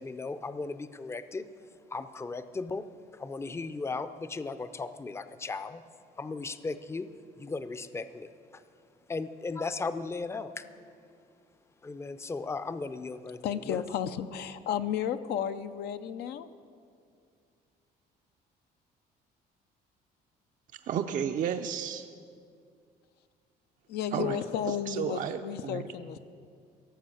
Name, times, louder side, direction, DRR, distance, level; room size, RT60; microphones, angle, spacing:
voice 1, 0.0-1.5 1.9-2.9 3.1-5.8 6.2-7.1 7.4-8.6 9.1-10.7 11.8-13.4 13.7-13.8, left 3 dB, 15° left, 12 dB, 0.5 m, -36 dB
voice 2, 13.4-16.5 23.9-26.2, left 9 dB, 75° left, 10 dB, 0.6 m, -33 dB
voice 3, 20.9-22.0 24.1-24.4 24.7-25.8, right 8 dB, 50° right, 7 dB, 0.5 m, -32 dB
17.0 x 7.4 x 7.1 m, 2.3 s
cardioid pair, 110°, 17 cm